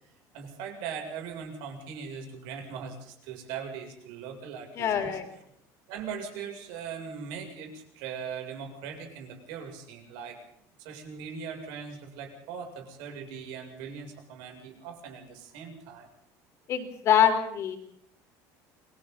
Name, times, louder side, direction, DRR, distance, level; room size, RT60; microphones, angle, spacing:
voice 1, 0.3-5.4 5.9-10.4 10.8-16.1, right 6 dB, 80° right, 3 dB, 7.5 m, -40 dB
voice 2, 4.8-5.3 16.7-17.8, left 9 dB, 40° left, 5 dB, 4.2 m, -24 dB
29.5 x 22.5 x 4.1 m, 0.69 s
cardioid pair, 175°, 8 cm